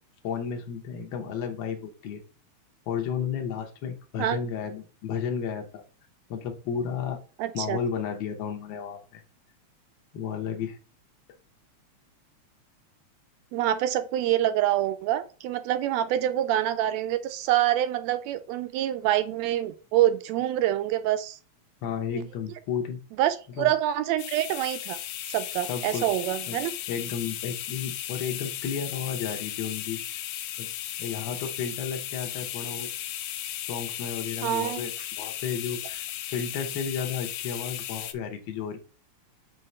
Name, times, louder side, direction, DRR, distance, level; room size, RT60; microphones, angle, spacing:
voice 1, 0.2-2.2 2.9-5.8 6.3-7.2 7.5-9.2 10.1-10.8 21.8-23.0 23.6-23.7 25.6-26.1 26.5-26.6 26.9-30.2 30.6-30.7 31.0-32.9 33.6-34.9 35.2-38.8, left 7 dB, 65° left, 3 dB, 1.2 m, -33 dB
voice 2, 7.4-7.8 13.5-21.4 22.1-22.2 23.2-25.0 25.3-26.7 34.4-34.8, right 12 dB, 80° right, 11 dB, 1.7 m, -26 dB
sound 1, 24.2-38.1, left 12 dB, 90° left, 1.3 m, -36 dB
5.8 x 3.0 x 5.3 m, 0.36 s
omnidirectional pair, 3.3 m